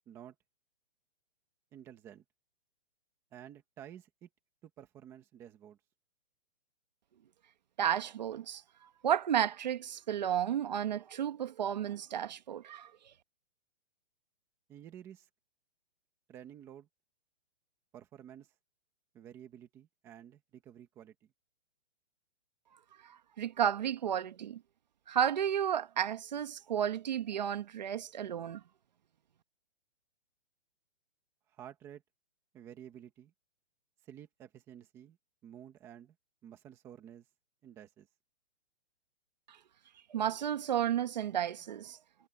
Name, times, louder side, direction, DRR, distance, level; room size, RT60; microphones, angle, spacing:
voice 1, 1.7-2.2 3.3-4.3 4.6-5.8 14.7-15.3 16.3-16.9 17.9-18.5 19.1-21.3 31.5-32.0 32.5-33.3 34.1-35.2 35.4-36.1 36.4-37.2 37.6-38.1, right 10 dB, 10° right, 1.4 m, -51 dB
voice 2, 7.8-8.6 9.0-12.9 23.0-24.6 25.1-28.6 39.5-39.6 40.1-42.0, right 9 dB, 40° right, 1.6 m, -32 dB
hypercardioid pair, 180°, 34 cm